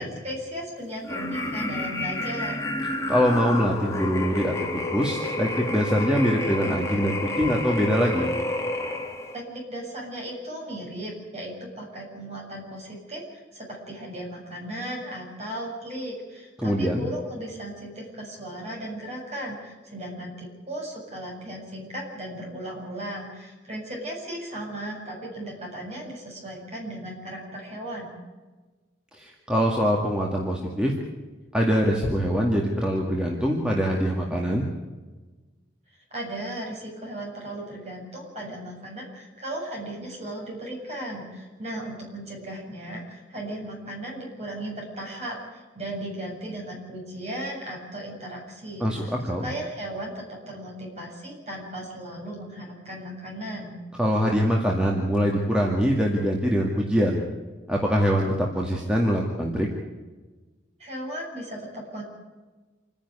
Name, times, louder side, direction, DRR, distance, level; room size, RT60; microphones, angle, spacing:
voice 1, 0.0-2.7 9.3-28.1 35.9-53.8 60.8-62.0, right 1 dB, 35° right, -2 dB, 7.6 m, -36 dB
sound 1, 1.0-9.4, left 2 dB, 15° left, 1.9 m, -30 dB
voice 2, 3.1-8.3 16.6-17.0 29.1-30.9 31.5-34.6 48.8-49.5 54.0-57.2 57.7-59.7, equal, 5° right, -2 dB, 2.1 m, -23 dB
27.5 x 10.5 x 9.7 m, 1.3 s
head